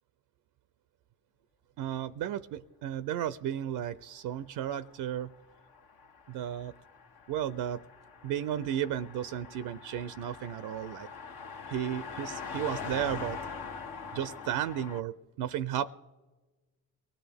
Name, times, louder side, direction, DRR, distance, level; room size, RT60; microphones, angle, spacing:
voice 1, 1.8-5.3 6.3-6.7 7.3-7.8 8.2-11.1 11.7-13.4 14.1-15.9, right 10 dB, 75° right, 15 dB, 0.5 m, -34 dB
Car passing by, 4.9-15.0, left 5 dB, 75° left, 1.2 m, -43 dB
22.5 x 17.0 x 3.4 m, 1.2 s
supercardioid pair, 60°, 38 cm